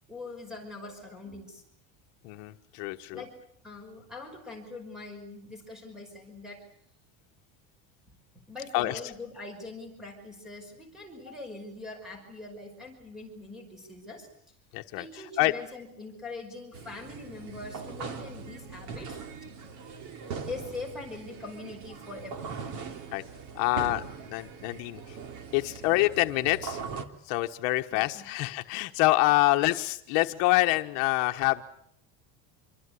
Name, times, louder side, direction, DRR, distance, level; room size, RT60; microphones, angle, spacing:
voice 1, 0.1-1.6 3.1-3.3 3.6-6.6 8.5-14.3 15.0-19.2 20.5-22.7 27.9-28.2, left 3 dB, ahead, 4 dB, 5.6 m, -42 dB
voice 2, 2.2-3.2 8.7-9.0 14.7-15.0 15.4-15.5 23.1-23.2 23.5-24.0 24.3-25.2 25.5-26.8 27.3-31.6, left 19 dB, 60° left, 5 dB, 1.3 m, -26 dB
sound 1, 16.7-27.0, right 5 dB, 50° right, 2.9 m, -41 dB
27.5 x 24.5 x 8.3 m, 0.69 s
cardioid pair, 175°, 39 cm